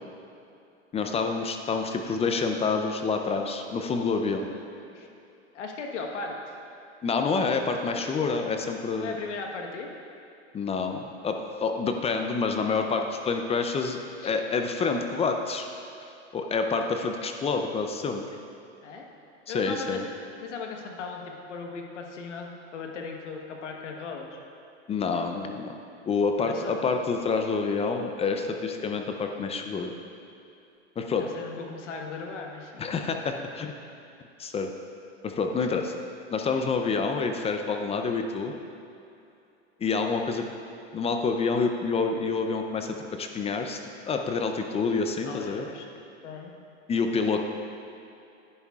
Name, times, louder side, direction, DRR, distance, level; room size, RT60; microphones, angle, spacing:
voice 1, 0.9-4.5 7.0-9.1 10.5-15.7 16.3-18.3 19.5-20.0 24.9-25.7 26.0-29.9 31.0-31.3 32.8-33.7 34.4-34.7 35.2-35.9 36.3-38.5 39.8-40.5 40.9-43.8 44.1-45.7 46.9-47.4, left 4 dB, 20° left, 4 dB, 0.5 m, -28 dB
voice 2, 5.5-6.3 9.0-9.9 14.2-14.3 18.8-19.1 19.5-24.3 26.4-26.8 31.2-32.9 45.3-45.9 46.2-46.5, left 4 dB, 85° left, 2 dB, 1.3 m, -37 dB
11.0 x 10.0 x 2.4 m, 2.7 s
hypercardioid pair, 105°, 35 cm